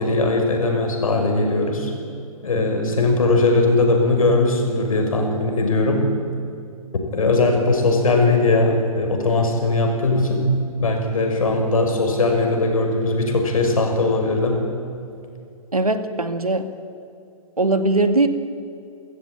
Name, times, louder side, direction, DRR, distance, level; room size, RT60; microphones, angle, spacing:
voice 1, 0.0-1.9 2.4-6.1 7.1-14.7, left 2 dB, 70° left, 3 dB, 6.2 m, -19 dB
voice 2, 15.7-16.7 17.6-18.3, right 2 dB, 90° right, 8 dB, 2.1 m, -20 dB
29.5 x 15.5 x 9.2 m, 2.4 s
figure-of-eight pair, 125°, 18 cm